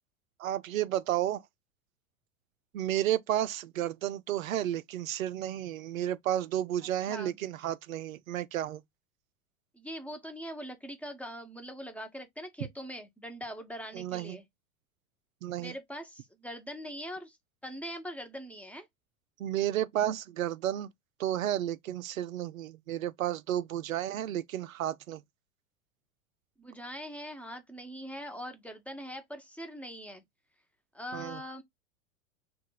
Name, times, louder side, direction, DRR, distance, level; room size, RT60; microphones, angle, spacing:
voice 1, 0.4-1.4 2.7-8.8 13.9-14.4 15.4-15.7 19.4-20.9 21.2-25.2 31.1-31.4, right 12 dB, 80° right, 0.5 m, -32 dB
voice 2, 7.1-7.4 9.7-14.4 15.6-17.4 17.6-18.9 26.6-30.2 30.9-31.6, equal, 5° left, 0.9 m, -42 dB
3.1 x 2.4 x 3.8 m
hypercardioid pair, 90°, 41 cm